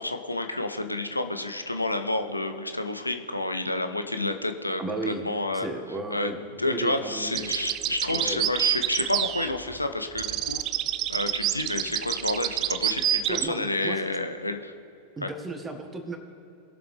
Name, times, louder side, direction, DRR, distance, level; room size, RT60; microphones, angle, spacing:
voice 1, 0.0-5.7 6.1-10.6 11.1-14.7 15.2-15.3, left 2 dB, 85° left, 7 dB, 0.7 m, -29 dB
voice 2, 4.8-5.2 5.5-6.4 6.7-7.5 8.1-8.4 13.3-14.0 15.2-16.2, right 3 dB, 15° right, 5 dB, 1.5 m, -34 dB
sound 1, 7.3-9.8 10.2-13.5, right 12 dB, 35° right, 0.4 m, -28 dB
21.0 x 7.0 x 3.3 m, 2.8 s
figure-of-eight pair, 90°, 0 cm